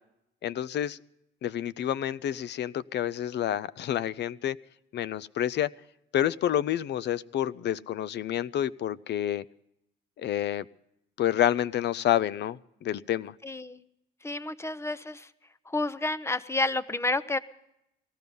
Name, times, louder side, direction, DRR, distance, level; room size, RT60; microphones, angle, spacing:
voice 1, 0.4-1.0 1.4-4.6 4.9-5.7 6.1-9.4 10.2-10.6 11.2-13.3, left 11 dB, 60° left, 20 dB, 0.5 m, -28 dB
voice 2, 13.4-13.8 14.2-15.3 15.7-17.4, left 2 dB, 15° left, 16 dB, 0.7 m, -30 dB
18.5 x 14.0 x 5.3 m, 0.82 s
cardioid pair, 90°, 20 cm